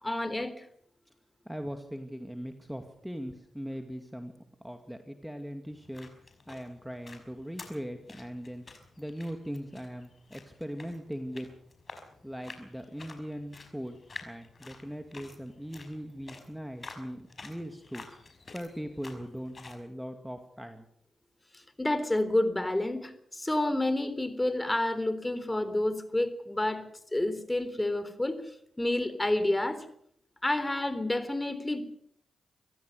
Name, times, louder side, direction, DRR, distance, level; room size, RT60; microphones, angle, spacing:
voice 1, 0.0-0.7 21.5-26.8 27.1-29.9 30.4-31.8, left 1 dB, 20° left, 12 dB, 3.7 m, -29 dB
voice 2, 1.5-4.3 4.6-6.1 6.5-8.6 9.0-11.5 12.2-18.1 18.5-20.9, equal, 5° right, 6 dB, 2.4 m, -40 dB
sound 1, 5.7-19.8, left 3 dB, 45° left, 5.6 m, -50 dB
25.5 x 16.0 x 6.7 m, 0.67 s
supercardioid pair, 40°, 0 cm